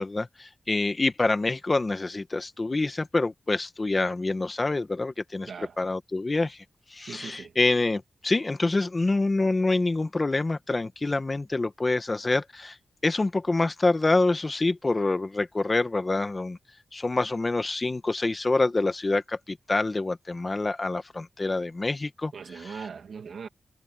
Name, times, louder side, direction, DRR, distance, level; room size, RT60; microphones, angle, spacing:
voice 1, 0.0-5.5 5.8-6.6 6.9-12.8 13.0-16.6 16.9-22.3, left 2 dB, 30° left, 1.3 m, -26 dB
voice 2, 5.5-5.8 7.1-7.5 22.3-23.5, right 6 dB, 90° right, 2.5 m, -40 dB
wide cardioid pair, 105°, 0 cm